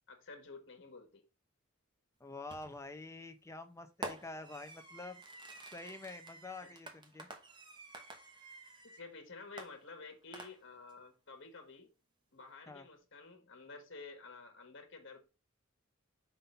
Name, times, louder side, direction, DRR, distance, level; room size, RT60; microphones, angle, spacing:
voice 1, 0.1-1.2 6.6-6.7 8.8-11.9 12.3-15.2, left 3 dB, 60° left, 1.6 m, -51 dB
voice 2, 2.2-5.2 5.7-7.3 12.7-12.9, left 2 dB, 15° left, 0.8 m, -47 dB
Fireworks, 2.5-2.9 4.0-9.1 9.6-10.9, right 2 dB, 20° right, 0.9 m, -49 dB
5.6 x 3.7 x 5.5 m
head